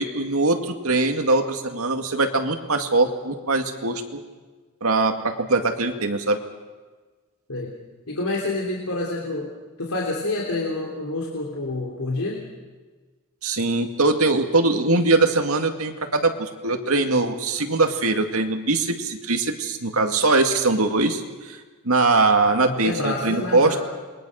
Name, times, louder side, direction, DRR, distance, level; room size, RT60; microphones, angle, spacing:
voice 1, 0.0-4.2 4.8-6.4 13.4-21.6 21.8-23.8, right 3 dB, 75° right, 5 dB, 2.2 m, -22 dB
voice 2, 8.1-9.5 9.8-12.4 22.6-23.8, left 2 dB, 80° left, -2 dB, 3.2 m, -28 dB
28.0 x 21.5 x 6.5 m, 1.4 s
head